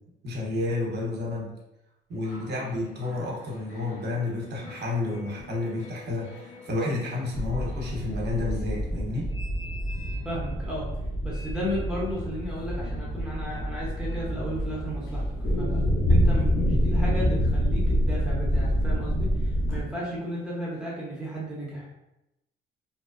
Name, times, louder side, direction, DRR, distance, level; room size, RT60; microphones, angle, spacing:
voice 1, 0.2-1.5 2.1-9.3, left 2 dB, 60° right, -3 dB, 0.9 m, -30 dB
sound 1, 2.1-21.0, left 3 dB, 80° left, 0.6 m, -49 dB
sound 2, 7.3-19.8, equal, 35° left, 0.5 m, -27 dB
voice 2, 10.2-10.9 11.2-15.8 16.1-22.0, equal, 5° right, -7 dB, 0.8 m, -34 dB
2.7 x 2.0 x 2.4 m, 0.89 s
cardioid pair, 90°, 20 cm